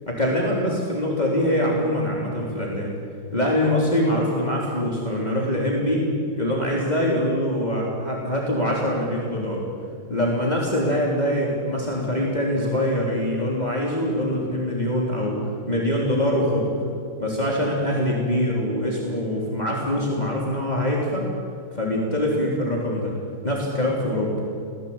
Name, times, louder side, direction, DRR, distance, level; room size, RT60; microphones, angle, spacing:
voice 1, 0.1-2.9 3.3-6.1 6.4-9.7 10.1-15.4 15.7-16.7 17.2-21.3 21.7-23.2 23.4-24.4, left 1 dB, 30° left, -3 dB, 3.9 m, -23 dB
27.0 x 19.5 x 8.9 m, 2.4 s
omnidirectional pair, 1.5 m